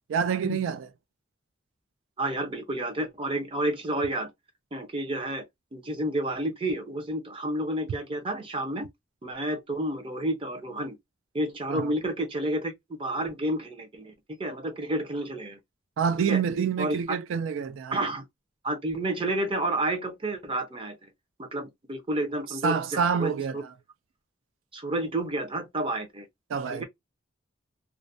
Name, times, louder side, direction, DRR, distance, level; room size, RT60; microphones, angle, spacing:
voice 1, 0.1-0.9 11.7-11.9 16.0-18.1 22.6-23.6 26.5-26.8, right 6 dB, 80° right, 0.3 m, -27 dB
voice 2, 2.2-4.3 4.7-5.4 5.7-8.9 9.2-11.0 11.3-12.7 13.0-14.1 14.4-15.6 16.3-16.4 16.8-17.2 17.9-18.2 18.6-21.1 21.4-23.6 24.7-26.3 26.7-26.8, right 1 dB, 25° right, 0.6 m, -30 dB
2.4 x 2.0 x 2.5 m
head